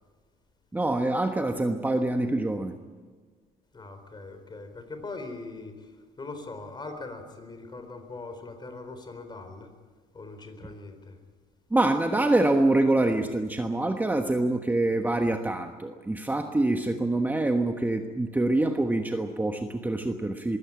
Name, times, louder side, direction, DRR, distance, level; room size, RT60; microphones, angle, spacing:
voice 1, 0.7-2.7 11.7-20.6, right 2 dB, 10° right, 5 dB, 1.3 m, -25 dB
voice 2, 3.7-9.7 10.1-11.2, left 3 dB, 25° left, 8 dB, 4.2 m, -41 dB
22.5 x 16.5 x 8.8 m, 1.5 s
cardioid pair, 110°, 17 cm